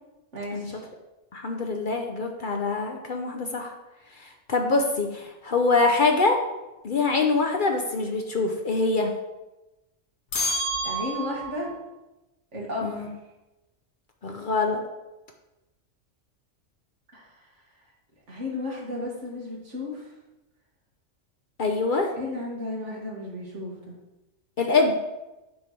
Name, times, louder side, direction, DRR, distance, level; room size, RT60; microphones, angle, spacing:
voice 1, 0.3-0.8 10.8-11.7 12.5-13.1 17.1-17.3 18.3-20.1 22.2-23.9, left 2 dB, 70° right, -3 dB, 2.2 m, -33 dB
voice 2, 1.3-3.7 4.5-6.4 6.8-9.1 12.8-13.1 14.2-14.8 21.6-22.1 24.6-24.9, left 3 dB, 50° left, 3 dB, 0.8 m, -24 dB
sound 1, 10.3-11.7, right 1 dB, 75° left, 1.5 m, -28 dB
8.5 x 3.4 x 5.8 m, 1.0 s
omnidirectional pair, 1.3 m